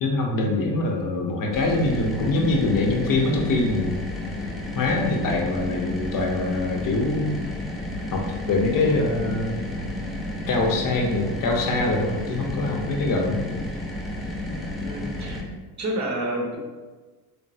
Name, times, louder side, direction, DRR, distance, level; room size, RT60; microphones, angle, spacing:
voice 1, 0.0-4.0 4.7-7.4 8.1-9.7 10.5-13.4 14.5-14.7, left 2 dB, 50° left, 1 dB, 0.6 m, -24 dB
sound 1, 1.5-15.4, left 1 dB, ahead, 0.4 m, -32 dB
voice 2, 14.8-15.4 15.8-16.6, right 1 dB, 40° right, 0 dB, 0.7 m, -29 dB
3.1 x 2.0 x 2.6 m, 1.4 s
supercardioid pair, 80°, 44 cm